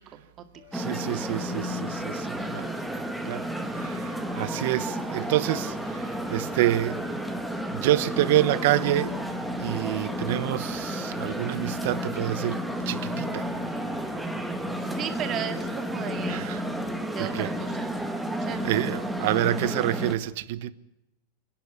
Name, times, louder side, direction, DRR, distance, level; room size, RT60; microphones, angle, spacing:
sound 1, 0.5-19.3, left 5 dB, 70° left, 6.2 m, -53 dB
sound 2, 0.7-20.2, equal, ahead, 1.3 m, -32 dB
voice 1, 0.7-2.7 3.2-7.0 7.7-9.2 9.6-13.5 16.3-16.6 17.2-17.5 18.6-20.7, right 14 dB, 55° right, 1.1 m, -27 dB
voice 2, 2.4-2.9 3.6-3.7 14.8-16.7 17.1-17.9 18.3-18.8, right 9 dB, 25° right, 2.1 m, -36 dB
29.0 x 10.5 x 9.5 m
supercardioid pair, 170°, 0 cm